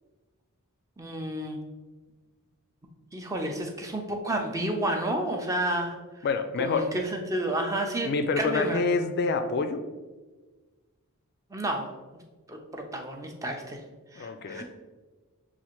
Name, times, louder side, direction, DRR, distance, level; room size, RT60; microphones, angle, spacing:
voice 1, 1.0-1.6 3.1-6.0 6.6-8.8 11.5-11.9 12.5-13.8 14.1-14.6, right 1 dB, 15° right, 2 dB, 0.4 m, -30 dB
voice 2, 6.2-6.9 8.0-9.8 14.2-14.6, left 4 dB, 50° left, 8 dB, 0.3 m, -27 dB
6.8 x 2.4 x 3.0 m, 1.3 s
head